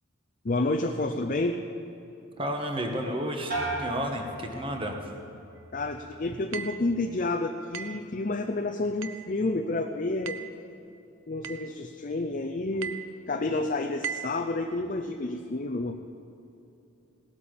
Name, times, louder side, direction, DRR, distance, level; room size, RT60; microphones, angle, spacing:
voice 1, 0.4-1.6 5.7-10.4 11.3-13.0 13.2-16.0, left 2 dB, 40° left, 5 dB, 0.5 m, -29 dB
voice 2, 2.4-5.0, equal, 25° right, 3 dB, 1.4 m, -32 dB
sound 1, 3.5-5.2 5.6-6.2, right 2 dB, 45° right, 2.1 m, -36 dB
sound 2, 6.5-6.9 7.7-8.1 9.0-9.3 10.3-10.6 11.4-11.7 12.8-13.1 14.0-14.4, right 7 dB, 65° right, 0.7 m, -37 dB
18.0 x 8.5 x 7.1 m, 2.8 s
head